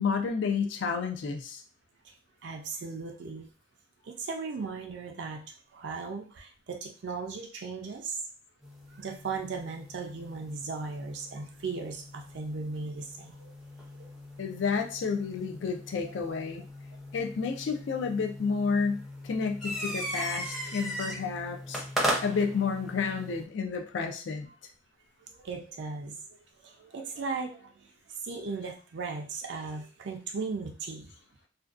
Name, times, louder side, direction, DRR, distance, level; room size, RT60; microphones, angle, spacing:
voice 1, 0.0-1.6 14.4-16.6 17.1-21.8 22.2-24.5, left 5 dB, 65° left, 4 dB, 0.4 m, -30 dB
voice 2, 2.4-3.5 4.0-5.4 5.7-8.2 8.9-13.5 13.9-14.1 25.3-31.1, right 4 dB, 60° right, 2 dB, 0.4 m, -37 dB
sound 1, 8.6-23.4, equal, ahead, 0.5 m, -38 dB
2.5 x 2.2 x 2.3 m, 0.36 s
head